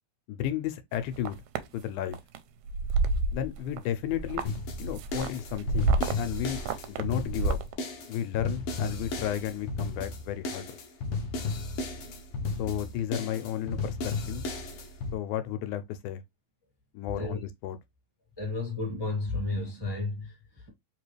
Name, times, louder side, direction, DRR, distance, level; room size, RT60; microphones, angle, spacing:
voice 1, 0.3-1.4 1.7-2.2 3.3-4.5 4.8-6.6 6.9-7.6 8.1-10.8 12.6-14.5 15.1-16.2 16.9-17.8, left 11 dB, 85° left, 2.0 m, -33 dB
sound 1, 0.9-1.6 2.1-2.4 2.7-3.8 4.1-7.7, right 3 dB, 80° right, 1.6 m, -29 dB
sound 2, 4.5-15.1, left 3 dB, 70° left, 1.4 m, -34 dB
voice 2, 18.4-20.7, left 3 dB, 10° left, 1.4 m, -32 dB
4.5 x 3.0 x 3.1 m
omnidirectional pair, 3.5 m